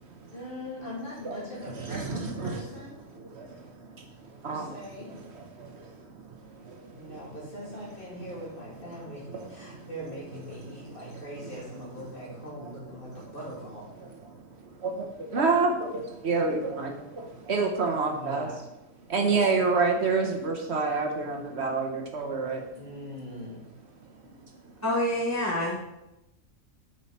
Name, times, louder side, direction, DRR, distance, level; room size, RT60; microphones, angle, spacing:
voice 1, 0.3-3.0 4.4-5.1 6.9-13.9 15.4-15.5 16.3-16.4 18.1-18.6 22.7-23.7, equal, 45° left, -6 dB, 2.8 m, -41 dB
voice 2, 1.7-2.6 3.1-3.9 4.3-4.7 5.3-7.2 9.3-9.9 14.3-14.4 14.7-18.5 19.1-22.7 24.3-24.4, right 4 dB, 55° right, 2 dB, 1.1 m, -29 dB
voice 3, 24.8-25.8, left 1 dB, 15° left, -3 dB, 0.8 m, -27 dB
7.8 x 5.2 x 4.2 m, 0.92 s
omnidirectional pair, 1.4 m